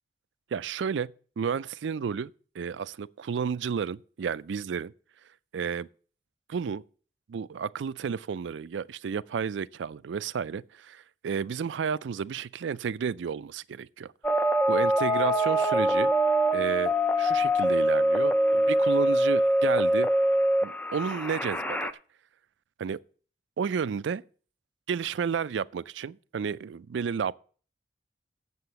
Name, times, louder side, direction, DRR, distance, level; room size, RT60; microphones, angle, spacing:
voice 1, 0.5-4.9 5.5-5.9 6.5-6.8 7.3-14.1 14.7-16.1 16.5-20.1 20.6-22.0 22.8-23.0 23.6-24.2 24.9-27.4, right 6 dB, 90° right, 0.4 m, -32 dB
sound 1, 14.2-21.9, right 1 dB, 10° left, 0.4 m, -24 dB
8.0 x 7.5 x 6.8 m
head